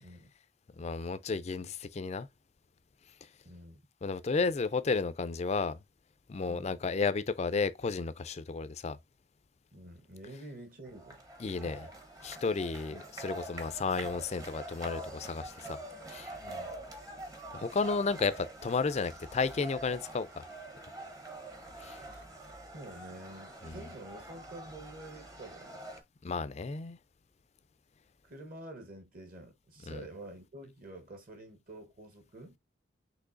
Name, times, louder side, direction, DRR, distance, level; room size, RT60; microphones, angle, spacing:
voice 1, 0.0-0.3 3.4-3.8 6.5-6.7 9.7-11.2 11.6-11.8 12.9-13.0 16.4-16.7 22.1-22.2 22.7-25.8 28.2-32.6, right 1 dB, 45° right, 1.1 m, -48 dB
voice 2, 0.7-2.3 4.0-5.8 6.3-9.0 11.4-11.9 12.2-15.8 16.1-16.3 17.5-20.4 21.8-22.0 23.6-23.8 26.2-27.0 29.9-30.0, left 4 dB, 35° left, 0.4 m, -33 dB
sound 1, 10.9-26.0, right 1 dB, 15° right, 0.7 m, -45 dB
6.0 x 3.1 x 2.5 m
head